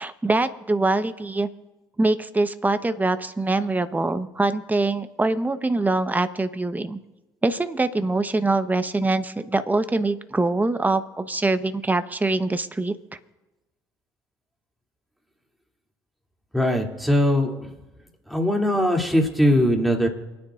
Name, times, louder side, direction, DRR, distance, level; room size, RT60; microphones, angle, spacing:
voice 1, 0.0-1.5 2.0-7.0 7.4-12.9, right 2 dB, 15° right, 10 dB, 1.0 m, -23 dB
voice 2, 16.5-17.7 18.3-20.1, left 1 dB, ahead, 0 dB, 2.8 m, -20 dB
28.5 x 9.8 x 2.5 m, 1.1 s
hypercardioid pair, 55°, 11 cm